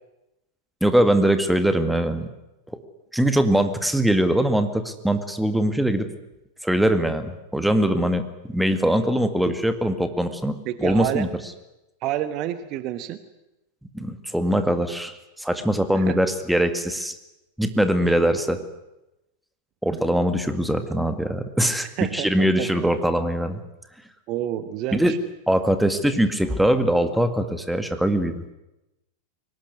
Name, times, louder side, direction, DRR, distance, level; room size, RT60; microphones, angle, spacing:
voice 1, 0.8-2.3 3.1-6.1 6.6-8.2 8.5-11.3 13.9-17.1 17.6-18.6 19.8-23.6 24.9-25.1 25.5-28.4, right 1 dB, ahead, 9 dB, 2.0 m, -22 dB
voice 2, 10.6-11.3 12.0-13.2 15.9-16.2 19.9-20.0 22.0-22.9 24.3-25.2, right 12 dB, 40° right, 12 dB, 1.3 m, -29 dB
23.0 x 19.0 x 9.6 m, 0.94 s
figure-of-eight pair, 90°, 0 cm